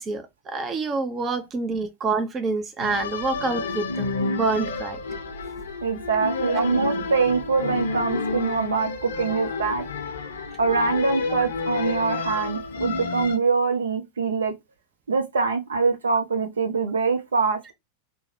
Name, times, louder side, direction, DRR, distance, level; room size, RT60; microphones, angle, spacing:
voice 1, 0.0-5.0 6.5-6.6 12.3-12.4, right 3 dB, 25° right, 0.5 m, -27 dB
sound 1, 2.8-13.4, left 3 dB, 65° left, 0.6 m, -30 dB
voice 2, 5.8-9.8 10.6-14.5 15.1-17.7, right 4 dB, 70° right, 0.6 m, -24 dB
3.3 x 2.1 x 3.1 m
figure-of-eight pair, 90°, 0 cm